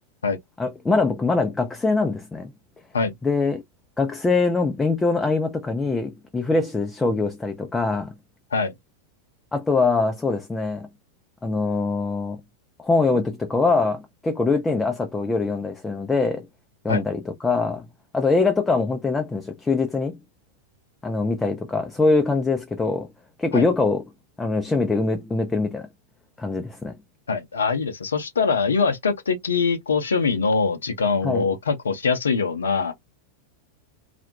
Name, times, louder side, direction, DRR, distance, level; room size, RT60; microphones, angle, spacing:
voice 1, 0.6-2.5 3.2-3.6 4.0-8.1 9.5-10.9 11.4-12.4 12.8-16.5 16.8-17.9 18.1-20.2 21.0-23.1 23.4-24.0 24.4-25.9 26.4-27.0 31.2-31.5, left 3 dB, 10° left, 0.4 m, -23 dB
voice 2, 27.3-32.9, left 5 dB, 70° left, 0.5 m, -23 dB
2.3 x 2.0 x 2.7 m
figure-of-eight pair, 90°, 0 cm